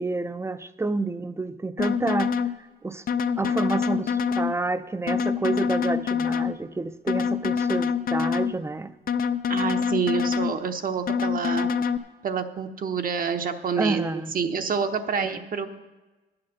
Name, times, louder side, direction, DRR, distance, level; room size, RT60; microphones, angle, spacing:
voice 1, 0.0-2.3 2.8-3.0 3.4-8.9 13.8-14.3 15.2-15.4, right 3 dB, 15° right, 12 dB, 0.5 m, -29 dB
sound 1, 1.8-2.5 3.1-4.5 5.1-6.5 7.1-8.5 9.1-10.5 11.1-12.0, left 6 dB, 45° left, 0.5 m, -25 dB
voice 2, 9.5-11.7 12.2-15.7, right 6 dB, 45° right, 7 dB, 0.8 m, -28 dB
8.7 x 8.3 x 6.4 m, 1.2 s
cardioid pair, 90°, 20 cm